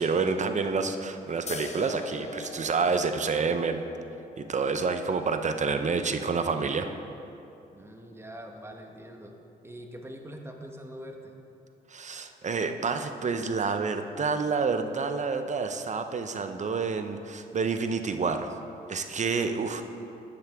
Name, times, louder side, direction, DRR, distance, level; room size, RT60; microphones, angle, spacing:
voice 1, 0.0-3.8 4.4-6.9 11.9-18.5 18.9-19.8, right 4 dB, 40° right, 8 dB, 0.8 m, -28 dB
sound 1, 1.5-8.6, left 3 dB, 40° left, 1.0 m, -44 dB
voice 2, 7.7-9.3 9.6-11.3, equal, 15° right, 3 dB, 1.3 m, -43 dB
12.0 x 9.6 x 3.6 m, 2.6 s
supercardioid pair, 60°, 18 cm